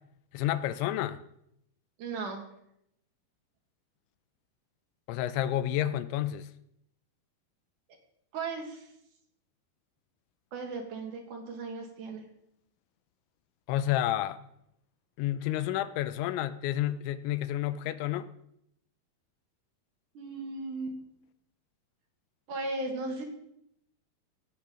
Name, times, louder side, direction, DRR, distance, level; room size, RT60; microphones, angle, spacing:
voice 1, 0.3-1.2 5.1-6.5 13.7-14.4 15.2-18.3, left 12 dB, 80° left, 13 dB, 2.9 m, -30 dB
voice 2, 2.0-2.4 8.3-8.9 10.5-12.2 20.1-21.0 22.5-23.2, right 3 dB, 55° right, 2 dB, 2.8 m, -36 dB
17.5 x 8.7 x 5.1 m, 0.76 s
omnidirectional pair, 5.4 m